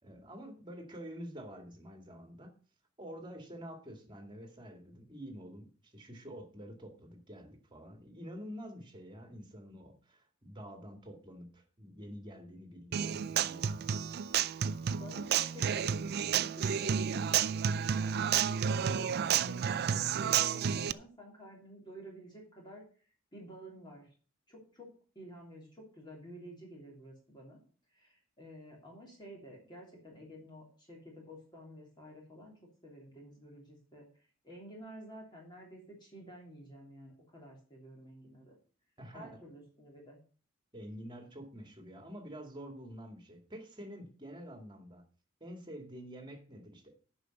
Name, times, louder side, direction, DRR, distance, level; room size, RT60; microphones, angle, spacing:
voice 1, 0.0-2.5 3.0-14.0 39.0-39.4 40.7-45.0 45.4-46.9, equal, 25° right, 4 dB, 2.1 m, -48 dB
Human voice / Acoustic guitar, 12.9-20.9, right 8 dB, 55° right, 0.4 m, -31 dB
voice 2, 15.0-22.8 23.3-24.1 24.5-24.9 25.1-27.6 27.9-32.5 32.8-34.1 34.4-38.6 39.1-40.2, equal, 25° left, -1 dB, 3.1 m, -51 dB
10.0 x 5.6 x 6.6 m, 0.39 s
head